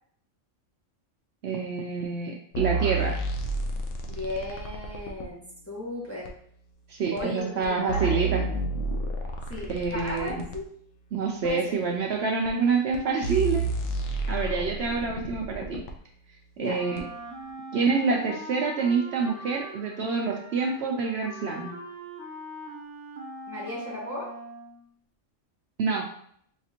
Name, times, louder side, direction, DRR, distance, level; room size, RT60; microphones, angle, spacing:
voice 1, 1.4-3.2 6.9-8.4 9.7-10.4 11.1-13.7 14.1-15.8 16.6-17.0 17.7-21.7 25.8-26.0, right 5 dB, 65° right, 1 dB, 0.7 m, -27 dB
sound 1, 2.5-5.3 6.2-6.3 7.2-7.3 7.6-10.6 11.4-11.5 12.4-12.5 12.9-13.0 13.2-15.9 17.0-17.1, right 3 dB, 75° left, 0.9 m, -30 dB
voice 2, 4.1-5.4 5.7-6.3 7.1-8.1 9.5-10.7 11.4-11.8 16.6-16.8 23.5-24.3, left 2 dB, 15° left, -5 dB, 0.7 m, -35 dB
Wind instrument woodwind instrument, 16.7-24.8, right 1 dB, 20° right, 0.5 m, -42 dB
4.9 x 2.5 x 2.8 m, 0.64 s
omnidirectional pair, 1.3 m